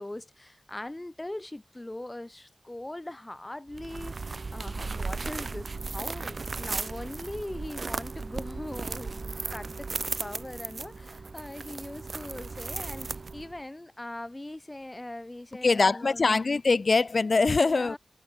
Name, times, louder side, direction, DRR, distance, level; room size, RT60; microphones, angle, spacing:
voice 1, 0.0-9.9 10.2-16.5 17.5-18.0, left 1 dB, 25° left, 7.6 m, -41 dB
sound 1, 3.7-13.6, right 3 dB, 65° right, 3.0 m, -36 dB
voice 2, 15.6-18.0, left 4 dB, 65° left, 1.8 m, -23 dB
cardioid pair, 50°, 0 cm